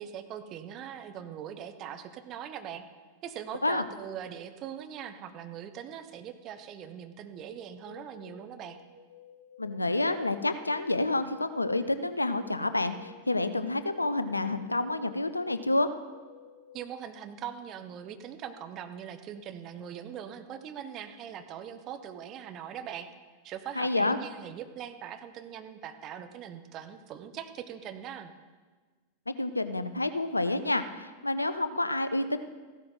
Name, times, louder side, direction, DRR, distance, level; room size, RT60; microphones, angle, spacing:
voice 1, 0.0-2.8 3.2-8.8 16.7-23.1 23.4-28.3, right 9 dB, 35° right, 8 dB, 1.1 m, -41 dB
sound 1, 7.3-16.9, left 7 dB, 55° left, 4.4 m, -54 dB
voice 2, 9.6-15.9 23.8-24.2 29.3-32.4, left 2 dB, 85° left, 12 dB, 0.6 m, -29 dB
15.0 x 12.5 x 3.9 m, 1.4 s
figure-of-eight pair, 90°, 0 cm